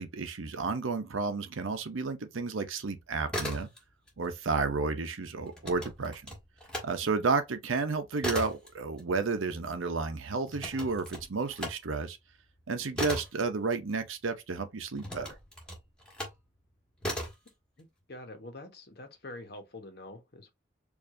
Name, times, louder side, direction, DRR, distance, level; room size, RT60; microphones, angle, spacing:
voice 1, 0.0-3.7 4.2-6.3 6.8-12.2 12.7-15.3, right 4 dB, 90° right, 0.7 m, -32 dB
sound 1, 3.1-4.1 4.4-6.9 7.3-14.3 15.0-16.4 17.0-17.5, equal, 5° left, 1.3 m, -38 dB
voice 2, 17.8-20.5, left 2 dB, 55° left, 1.0 m, -46 dB
4.7 x 2.6 x 2.6 m
head